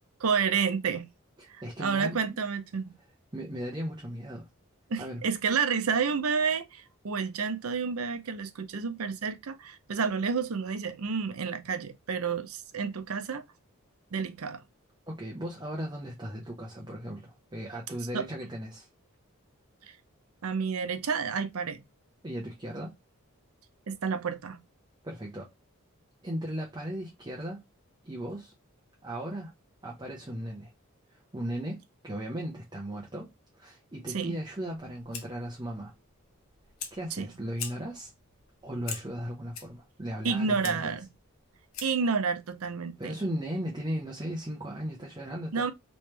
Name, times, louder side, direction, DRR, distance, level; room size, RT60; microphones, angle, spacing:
voice 1, 0.2-1.0 1.5-2.9 4.9-13.4 14.1-14.6 18.1-18.2 19.9-20.0 20.4-21.8 23.9-24.6 34.1-34.3 37.2-37.3 40.2-41.1 41.8-43.2 45.5-45.7, right 5 dB, 85° right, 0.6 m, -30 dB
voice 2, 1.6-2.4 3.3-4.5 5.0-5.2 15.1-18.9 22.2-22.9 25.0-25.5 26.2-27.6 28.0-28.5 29.0-29.5 29.8-30.7 31.1-33.3 33.6-35.9 36.9-38.1 38.6-41.0 43.0-45.7, equal, 20° right, 0.7 m, -37 dB
Fire, 34.7-42.1, left 7 dB, 75° left, 0.8 m, -45 dB
3.2 x 3.1 x 3.2 m
head